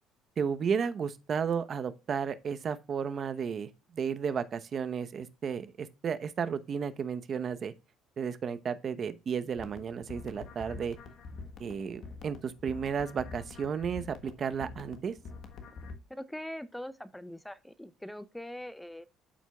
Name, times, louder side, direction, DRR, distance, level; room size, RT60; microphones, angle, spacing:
voice 1, 0.4-7.7 8.2-11.0 11.6-15.1, right 6 dB, 45° right, 0.8 m, -33 dB
sound 1, 9.5-15.9, left 4 dB, 55° left, 1.4 m, -46 dB
voice 2, 16.1-19.1, left 1 dB, 5° left, 0.5 m, -42 dB
12.5 x 4.5 x 2.3 m
supercardioid pair, 85°, 0 cm